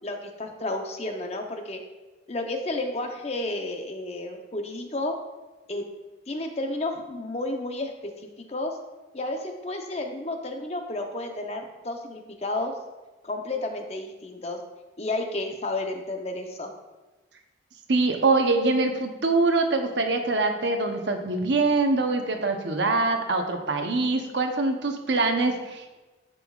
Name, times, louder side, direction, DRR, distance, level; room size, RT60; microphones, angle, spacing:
voice 1, 0.0-1.8 2.3-5.2 5.7-5.9 6.3-8.1 8.5-8.8 9.1-12.7 13.2-14.6 15.0-16.7, left 2 dB, 35° left, 4 dB, 0.7 m, -31 dB
voice 2, 17.9-26.0, right 3 dB, 70° right, 5 dB, 0.8 m, -24 dB
10.5 x 5.4 x 2.4 m, 1.1 s
head